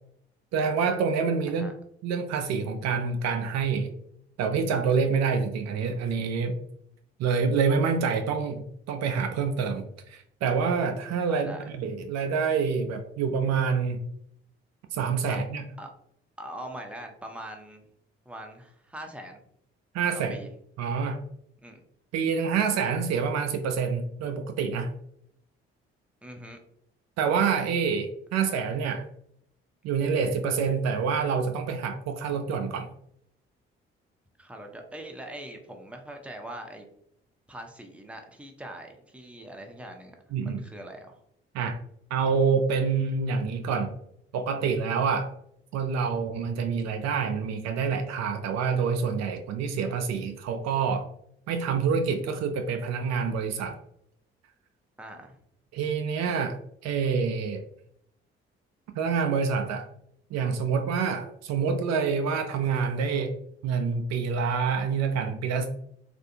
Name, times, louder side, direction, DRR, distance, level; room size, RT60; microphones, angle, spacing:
voice 1, 0.5-1.7 2.0-3.9 4.4-6.5 7.2-14.0 14.9-15.6 19.9-20.4 20.8-21.2 22.1-24.9 27.2-29.0 29.8-32.9 40.3-40.6 41.5-41.8 42.1-43.9 44.3-45.3 45.7-51.1 51.5-53.8 55.7-57.6 59.0-59.9 60.3-63.3 63.6-65.7, right 5 dB, 60° right, 6 dB, 0.5 m, -27 dB
voice 2, 11.3-11.7 15.3-15.4 15.8-15.9 16.4-17.8 18.3-19.4 20.3-20.5 21.6-21.8 26.2-26.6 34.4-36.9 37.5-40.2 40.4-41.2 55.0-55.4, right 1 dB, 5° right, 3 dB, 0.7 m, -42 dB
3.2 x 2.5 x 2.7 m, 0.71 s
hypercardioid pair, 45°, 30 cm